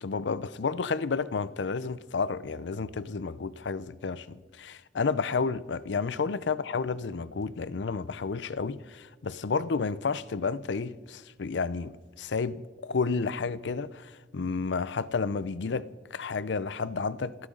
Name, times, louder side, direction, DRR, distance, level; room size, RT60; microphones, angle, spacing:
voice 1, 0.0-17.4, left 4 dB, 85° left, 0.6 m, -31 dB
28.0 x 13.5 x 3.8 m
head